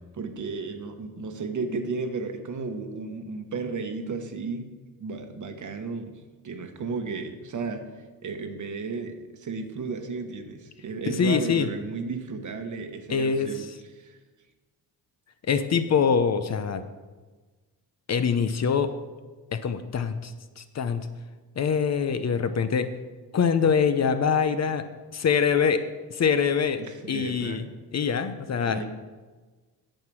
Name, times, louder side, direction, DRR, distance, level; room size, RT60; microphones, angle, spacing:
voice 1, 0.1-4.7 5.0-13.7 13.9-14.2 26.8-27.7 28.6-28.8, right 4 dB, 50° right, 6 dB, 1.2 m, -34 dB
voice 2, 11.1-11.7 13.1-13.5 15.5-16.8 18.1-19.0 19.5-21.1 21.6-22.9 23.3-26.8 27.1-27.6 27.9-28.8, left 6 dB, 40° left, 10 dB, 0.7 m, -24 dB
9.0 x 7.6 x 6.2 m, 1.3 s
cardioid pair, 110°, 39 cm